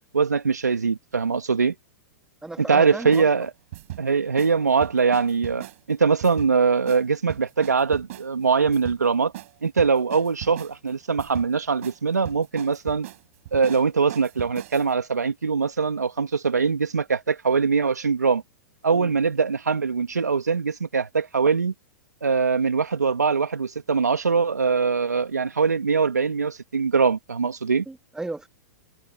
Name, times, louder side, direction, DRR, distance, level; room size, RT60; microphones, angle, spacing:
voice 1, 0.1-1.8 2.6-3.5 4.0-9.3 9.6-13.1 13.5-18.4 18.8-21.7 22.2-27.8, right 5 dB, 85° right, 2.4 m, -22 dB
voice 2, 2.4-3.3 18.9-19.1 27.9-28.5, right 2 dB, 5° right, 3.0 m, -34 dB
sound 1, 3.1-3.3 3.7-4.0 4.4-4.5 4.8-5.8 6.2-6.5 6.9-7.0 7.3-8.3 8.7-9.0 9.3-9.5 9.8-10.8 11.2-11.5 11.8-12.0 12.2-14.9, right 16 dB, 60° right, 5.6 m, -38 dB
hypercardioid pair, 105°, 9 cm